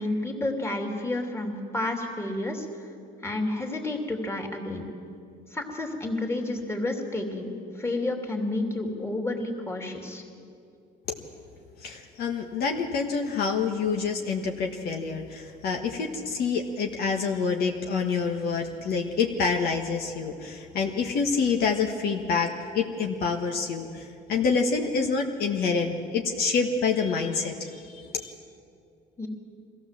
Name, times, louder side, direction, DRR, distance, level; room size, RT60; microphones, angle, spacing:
voice 1, 0.0-2.7 3.2-4.9 5.5-10.2 29.2-29.3, left 2 dB, 15° left, 1 dB, 2.8 m, -30 dB
voice 2, 11.8-28.3, left 5 dB, 65° left, 2 dB, 1.5 m, -27 dB
23.0 x 15.0 x 7.4 m, 2.4 s
cardioid pair, 110°, 17 cm